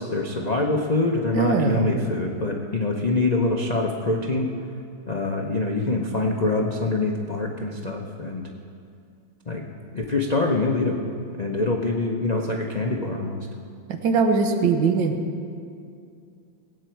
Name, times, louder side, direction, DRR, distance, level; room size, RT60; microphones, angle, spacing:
voice 1, 0.0-4.5 5.1-8.4 9.5-9.6 9.9-11.0 11.4-13.4, left 2 dB, 65° left, 0 dB, 0.4 m, -25 dB
voice 2, 1.3-2.0 14.0-15.2, right 4 dB, 70° right, 5 dB, 1.6 m, -21 dB
19.0 x 8.9 x 4.6 m, 2.4 s
omnidirectional pair, 2.1 m